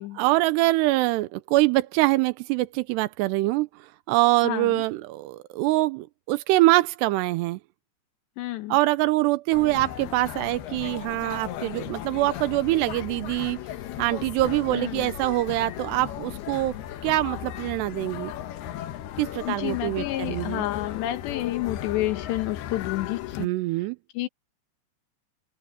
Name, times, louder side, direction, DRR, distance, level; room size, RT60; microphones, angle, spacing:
voice 1, 0.1-7.6 8.7-13.6 14.0-16.8 17.0-18.3 19.2-20.7 23.4-24.0, right 18 dB, 90° right, 2.8 m, -24 dB
voice 2, 4.4-4.8 8.4-8.8 14.7-15.1 19.5-23.5 24.2-24.3, left 15 dB, 90° left, 3.6 m, -30 dB
sound 1, 9.5-23.5, left 11 dB, 75° left, 3.0 m, -36 dB
open air
omnidirectional pair, 4.8 m